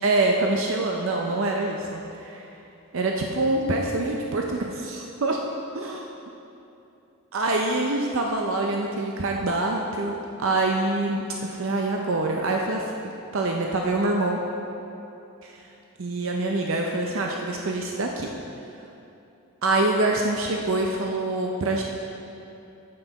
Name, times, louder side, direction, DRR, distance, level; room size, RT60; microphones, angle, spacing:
voice 1, 0.0-2.5 2.9-5.4 5.7-6.1 7.3-12.8 13.3-14.4 15.4-15.6 16.0-18.3 19.6-21.8, right 2 dB, 65° right, 1 dB, 0.6 m, -25 dB
9.5 x 7.7 x 4.0 m, 2.8 s
head